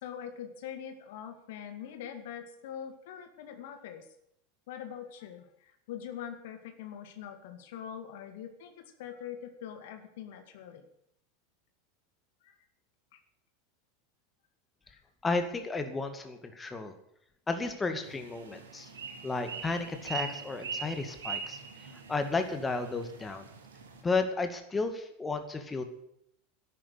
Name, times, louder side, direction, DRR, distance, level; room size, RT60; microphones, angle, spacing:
voice 1, 0.0-4.1 4.7-10.9 12.4-12.6 14.9-15.0 18.4-18.6 20.8-21.1 22.7-22.8, left 9 dB, 60° left, 7 dB, 2.2 m, -43 dB
voice 2, 15.2-16.9 17.5-18.9 19.2-21.6 22.1-23.5 24.0-25.8, left 3 dB, 15° left, 7 dB, 2.2 m, -33 dB
sound 1, 18.0-24.0, right 6 dB, 75° right, 2.8 m, -42 dB
13.5 x 11.0 x 8.4 m, 0.76 s
figure-of-eight pair, 80°, 0 cm